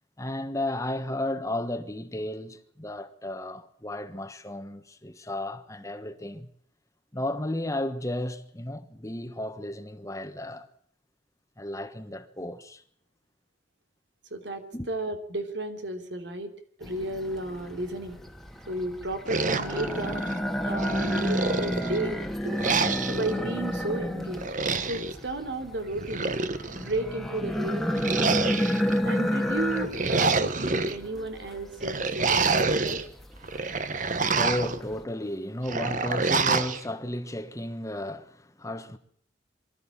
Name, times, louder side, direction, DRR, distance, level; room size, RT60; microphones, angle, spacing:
voice 1, 0.2-6.5 7.1-10.7 11.6-12.8 14.7-14.9 33.6-39.0, left 1 dB, 20° left, 1.3 m, -34 dB
voice 2, 14.3-16.5 16.8-18.2 18.7-20.2 20.6-22.6 23.0-24.4 24.9-26.4 26.7-28.5 29.0-33.0, right 2 dB, 80° right, 3.1 m, -33 dB
sound 1, 16.8-35.0, equal, ahead, 1.7 m, -31 dB
sound 2, 19.3-20.4 20.8-22.0 22.6-23.3 24.4-25.1 25.9-26.9 28.0-29.0 29.7-30.9 31.8-33.0 33.4-34.8 35.7-36.8, right 4 dB, 45° right, 1.3 m, -27 dB
24.0 x 13.5 x 8.7 m
head